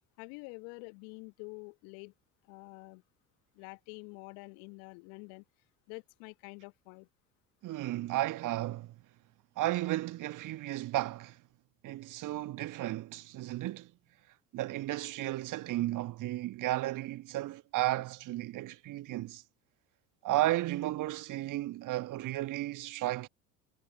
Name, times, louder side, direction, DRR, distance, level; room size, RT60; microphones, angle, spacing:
voice 1, 0.2-2.1 2.5-3.0 3.5-5.4 5.9-7.1, left 37 dB, 60° left, 1.2 m, -47 dB
voice 2, 7.6-8.9 9.6-11.4 11.8-13.9 14.5-19.4 20.2-23.3, right 15 dB, 45° right, 1.4 m, -34 dB
figure-of-eight pair, 65°, 42 cm